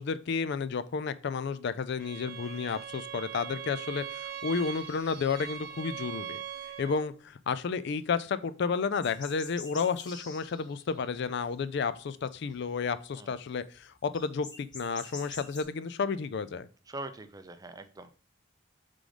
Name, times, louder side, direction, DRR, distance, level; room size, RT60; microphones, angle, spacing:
voice 1, 0.0-6.4 6.8-16.7, left 5 dB, 60° left, 14 dB, 0.4 m, -32 dB
Bowed string instrument, 2.0-7.1, right 10 dB, 50° right, 0.9 m, -41 dB
sound 1, 9.0-11.6 11.9-12.6 13.5-13.6 13.8-13.9 14.1-15.6, left 3 dB, 25° left, 1.4 m, -46 dB
voice 2, 16.9-18.2, right 2 dB, 20° right, 10 dB, 0.5 m, -43 dB
4.9 x 3.8 x 5.0 m, 0.39 s
head